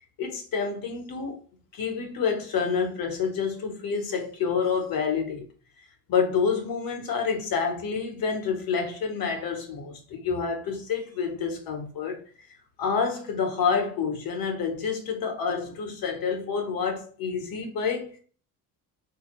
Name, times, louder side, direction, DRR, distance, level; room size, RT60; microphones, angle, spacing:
voice 1, 0.2-1.3 1.7-5.4 6.1-12.2 12.8-18.1, left 6 dB, 60° left, 1.2 m, -28 dB
3.7 x 2.8 x 3.0 m
cardioid pair, 120°, 40 cm